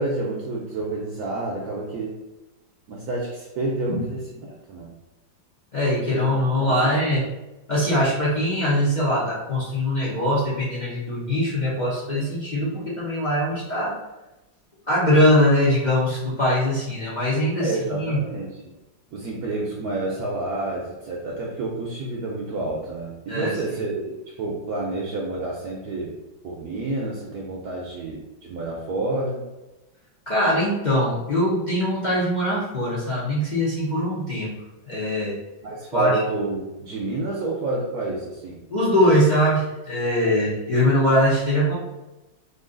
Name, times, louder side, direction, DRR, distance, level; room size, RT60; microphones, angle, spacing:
voice 1, 0.0-2.2 2.9-4.9 6.1-6.3 6.6-7.0 17.6-18.7 19.1-26.1 26.4-29.4 35.6-38.6, right 2 dB, 70° right, -3 dB, 0.9 m, -29 dB
voice 2, 5.7-7.2 7.7-13.9 14.9-18.2 23.3-23.5 30.3-34.5 34.9-35.3 35.9-36.1 38.7-41.7, equal, 65° left, -8 dB, 0.4 m, -22 dB
3.1 x 2.7 x 3.7 m, 1.0 s
omnidirectional pair, 2.1 m